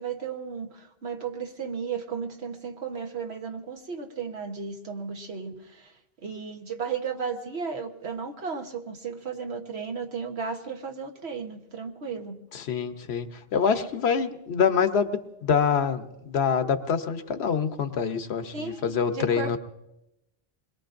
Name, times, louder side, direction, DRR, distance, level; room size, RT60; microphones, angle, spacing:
voice 1, 0.0-5.9 6.2-12.4 18.5-19.6, right 5 dB, 90° right, 3 dB, 1.5 m, -34 dB
voice 2, 12.5-19.6, left 6 dB, 80° left, 9 dB, 1.1 m, -26 dB
26.5 x 21.5 x 2.6 m, 0.90 s
omnidirectional pair, 1.1 m